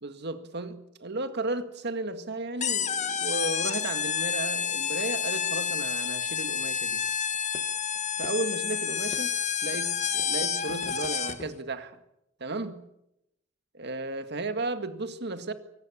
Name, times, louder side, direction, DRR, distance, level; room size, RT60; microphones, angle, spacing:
voice 1, 0.0-7.0 8.2-9.3 9.6-11.9 12.4-12.9 13.7-15.5, right 2 dB, 55° right, 1.9 m, -34 dB
sound 1, 2.6-11.5, left 7 dB, 35° left, 1.4 m, -29 dB
23.5 x 19.0 x 8.5 m
head